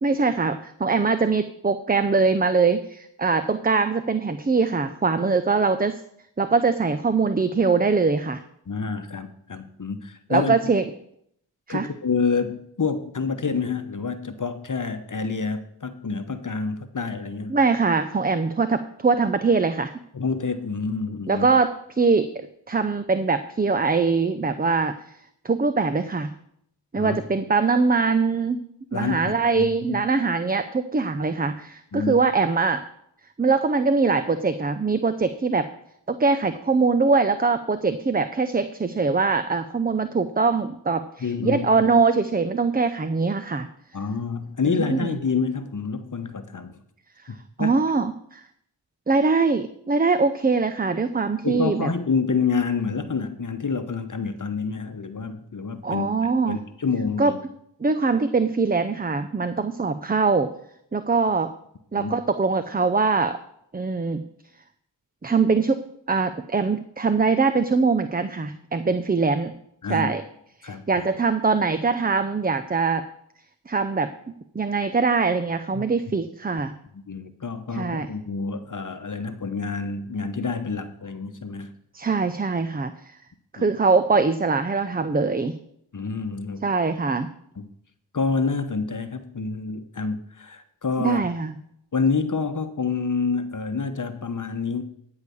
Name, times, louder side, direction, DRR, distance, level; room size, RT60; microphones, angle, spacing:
voice 1, 0.0-6.0 6.4-8.4 10.3-10.9 11.7-11.9 17.5-19.9 21.3-24.9 25.4-26.3 26.9-28.6 28.9-32.8 33.4-35.6 36.1-43.7 44.7-45.1 47.2-48.4 49.1-51.9 55.8-56.6 57.2-57.3 57.8-60.5 60.9-61.5 61.9-63.4 63.7-64.2 65.2-65.8 66.1-69.5 69.9-70.2 70.6-73.0 73.7-74.1 74.5-76.7 77.7-78.1 81.9-83.2 83.5-85.6 86.6-87.3 91.0-91.5, right 4 dB, 20° right, 11 dB, 0.6 m, -22 dB
voice 2, 8.7-10.5 11.7-17.6 20.1-21.5 26.9-27.2 28.9-30.0 31.9-32.2 41.2-41.7 43.9-46.8 47.3-47.8 51.4-56.1 56.4-57.4 62.0-62.1 69.8-70.1 70.6-71.1 75.7-75.8 76.9-81.7 83.6-83.7 85.9-86.6 87.6-87.7 88.1-91.2 91.9-94.8, left 5 dB, 40° left, 9 dB, 1.0 m, -28 dB
13.0 x 4.9 x 6.9 m, 0.72 s
cardioid pair, 45°, 45 cm